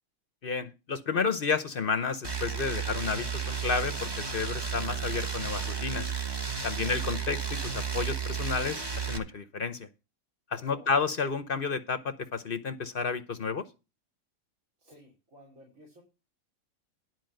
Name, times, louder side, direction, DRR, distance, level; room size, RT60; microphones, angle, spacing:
voice 1, 0.4-6.1 6.6-9.9 10.5-13.6, left 5 dB, 50° left, 11 dB, 0.8 m, -31 dB
sound 1, 2.2-9.2, right 6 dB, 20° right, 0.8 m, -33 dB
voice 2, 10.5-10.9 14.8-16.0, left 2 dB, 70° right, -1 dB, 3.7 m, -54 dB
11.5 x 4.6 x 7.7 m, 0.30 s
omnidirectional pair, 1.5 m